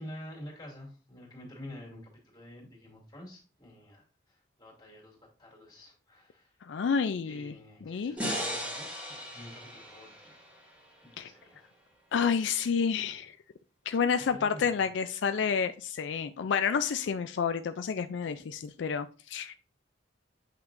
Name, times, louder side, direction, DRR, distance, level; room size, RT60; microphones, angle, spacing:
voice 1, 0.0-6.6 7.2-10.3 11.0-11.7 14.3-14.8, left 1 dB, 20° left, -3 dB, 2.6 m, -48 dB
voice 2, 6.6-7.5 7.8-8.2 11.2-11.3 12.1-13.4 13.9-19.5, left 6 dB, 75° left, 10 dB, 0.4 m, -29 dB
sound 1, 8.2-11.4, equal, 5° right, 2.0 m, -37 dB
8.6 x 5.7 x 2.5 m, 0.37 s
head